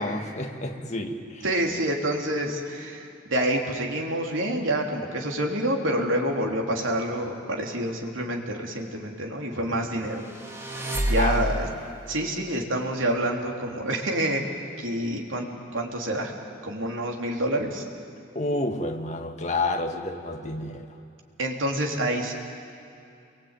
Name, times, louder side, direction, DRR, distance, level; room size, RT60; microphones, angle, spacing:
voice 1, 0.0-1.4 11.2-11.9 18.4-21.0, left 2 dB, 35° left, 4 dB, 1.8 m, -30 dB
voice 2, 1.4-10.3 10.7-11.7 12.1-14.4 14.8-16.3 16.6-17.8 21.4-22.3, right 1 dB, 80° right, 1 dB, 3.5 m, -27 dB
sound 1, 10.1-11.9, right 1 dB, 15° right, 2.6 m, -28 dB
28.5 x 22.5 x 9.1 m, 2.5 s
head